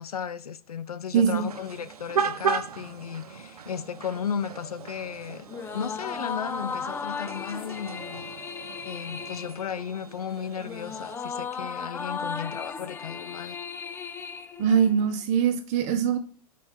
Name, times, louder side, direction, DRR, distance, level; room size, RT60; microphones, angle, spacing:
voice 1, 0.0-5.5 5.7-8.2 8.8-13.6, left 7 dB, 75° left, 0.5 m, -35 dB
voice 2, 1.1-1.4 14.6-16.2, right 7 dB, 35° right, 1.1 m, -22 dB
sound 1, 1.2-11.2, right 6 dB, 75° right, 0.8 m, -36 dB
sound 2, 5.5-15.2, left 5 dB, 10° left, 0.4 m, -36 dB
6.1 x 4.6 x 5.5 m
figure-of-eight pair, 95°, 19 cm